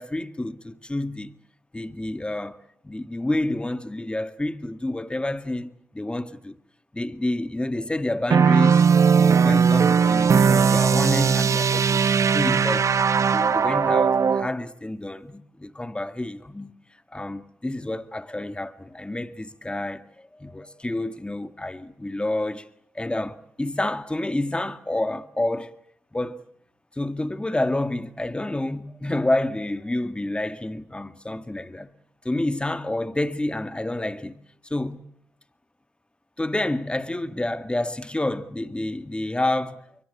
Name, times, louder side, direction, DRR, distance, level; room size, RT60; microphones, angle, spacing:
voice 1, 0.0-1.3 1.7-2.6 2.8-6.6 6.9-12.0 12.3-12.9 13.3-16.7 17.1-22.7 23.0-25.7 26.1-26.5 27.0-31.9 32.2-34.4 34.7-35.0 36.4-39.9, left 1 dB, 15° left, 1.9 m, -29 dB
sound 1, 8.3-14.5, right 6 dB, 55° right, 1.0 m, -18 dB
25.5 x 23.5 x 8.4 m
supercardioid pair, 50°, 6 cm